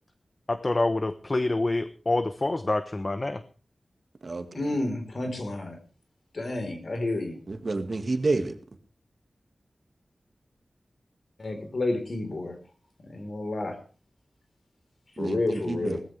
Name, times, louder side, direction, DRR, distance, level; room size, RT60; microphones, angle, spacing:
voice 1, 0.5-3.4, left 2 dB, 35° left, 11 dB, 0.9 m, -26 dB
voice 2, 4.5-5.8 6.3-7.4 11.4-12.6 13.0-13.8 15.2-16.0, left 2 dB, 55° left, 6 dB, 4.0 m, -30 dB
voice 3, 7.5-8.5 15.2-16.0, right 3 dB, 50° right, 7 dB, 1.8 m, -29 dB
19.0 x 14.5 x 3.4 m, 0.36 s
wide cardioid pair, 100°, 0 cm